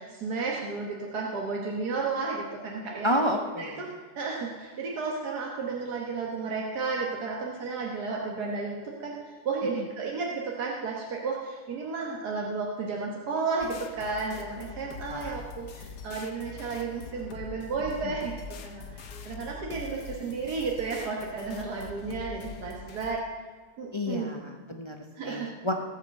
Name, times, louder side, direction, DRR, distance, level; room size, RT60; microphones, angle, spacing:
voice 1, 0.0-3.1 3.6-3.9 4.2-18.3 18.6-23.2 23.8-24.3 25.1-25.5, right 4 dB, 85° right, -2 dB, 1.9 m, -33 dB
voice 2, 3.0-3.9 9.8-9.9 15.1-15.4 23.9-25.0 25.2-25.7, equal, 20° left, 3 dB, 0.9 m, -30 dB
sound 1, 13.6-23.2, left 4 dB, 85° left, 1.5 m, -43 dB
17.5 x 6.0 x 7.7 m, 1.4 s
omnidirectional pair, 1.7 m